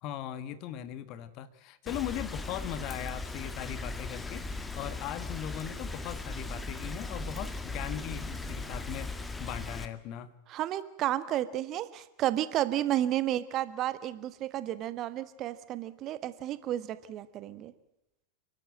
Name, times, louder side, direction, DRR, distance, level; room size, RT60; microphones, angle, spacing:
voice 1, 0.0-10.3, left 11 dB, 40° left, 14 dB, 1.6 m, -39 dB
Rain, 1.9-9.9, left 3 dB, 10° left, 1.7 m, -38 dB
voice 2, 10.5-17.7, right 13 dB, 35° right, 14 dB, 1.4 m, -32 dB
29.5 x 12.0 x 9.0 m, 0.88 s
figure-of-eight pair, 90°, 0 cm